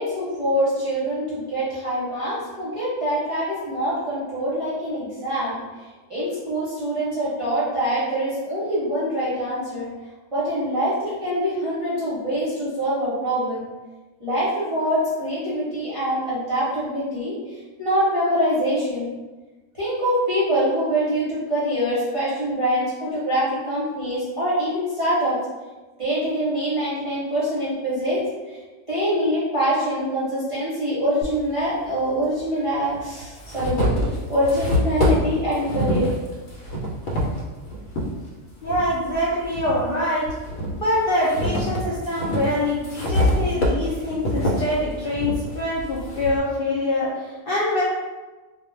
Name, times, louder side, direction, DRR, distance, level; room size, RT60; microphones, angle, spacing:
voice 1, 0.0-5.6 6.1-9.9 10.3-13.7 14.2-17.3 17.8-19.1 19.8-25.4 26.0-28.2 28.5-28.6 28.9-33.8 34.3-36.1, equal, 30° right, -10 dB, 0.6 m, -24 dB
sound 1, 31.2-31.3 32.4-32.5 33.0-38.1 38.6-39.8 40.2-46.4, equal, 75° left, 1.0 m, -25 dB
voice 2, 38.6-40.3 40.8-47.8, left 1 dB, 60° left, -8 dB, 0.6 m, -24 dB
2.3 x 2.1 x 3.1 m, 1.2 s
omnidirectional pair, 1.4 m